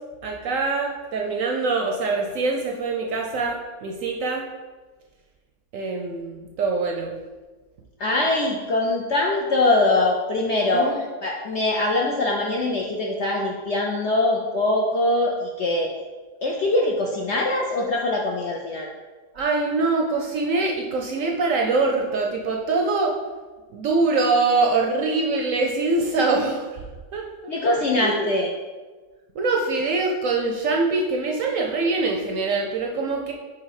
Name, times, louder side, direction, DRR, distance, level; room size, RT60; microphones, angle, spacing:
voice 1, 0.2-4.4 5.7-7.1 10.7-11.0 19.3-23.2 23.7-26.8 27.1-27.5 28.0-28.3 29.3-33.3, right 3 dB, 65° right, 1 dB, 0.8 m, -24 dB
voice 2, 8.0-10.9 11.2-15.9 16.4-18.9 27.5-28.5, left 2 dB, 60° left, -1 dB, 0.7 m, -22 dB
4.8 x 4.4 x 4.7 m, 1.3 s
omnidirectional pair, 1.8 m